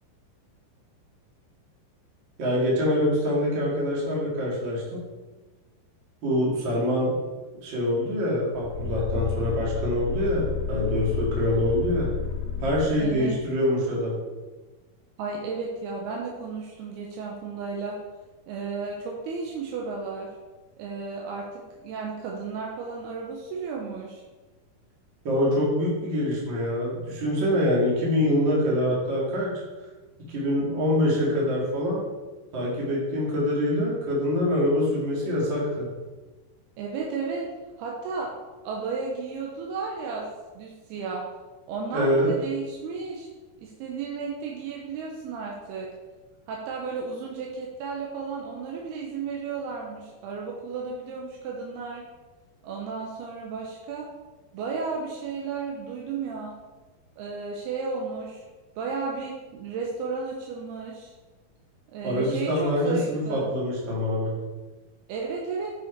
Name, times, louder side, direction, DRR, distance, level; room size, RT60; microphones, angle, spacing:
voice 1, 2.4-5.0 6.2-7.1 7.6-12.1 12.6-14.1 25.2-29.5 30.3-32.1 32.5-35.9 41.9-42.3 62.0-64.3, left 1 dB, 35° right, -5 dB, 2.4 m, -25 dB
sound 1, 8.5-13.4, left 8 dB, 75° left, 3.5 m, -31 dB
voice 2, 13.0-13.3 15.2-18.0 18.5-20.3 20.8-24.2 36.8-37.5 37.8-38.3 38.6-40.3 40.5-41.2 41.7-43.3 43.6-45.9 46.5-52.1 52.6-54.1 54.5-56.5 57.2-58.4 58.8-61.1 61.9-63.4 65.1-65.7, right 4 dB, 85° right, -1 dB, 3.0 m, -33 dB
8.0 x 6.5 x 4.6 m, 1.2 s
omnidirectional pair, 4.5 m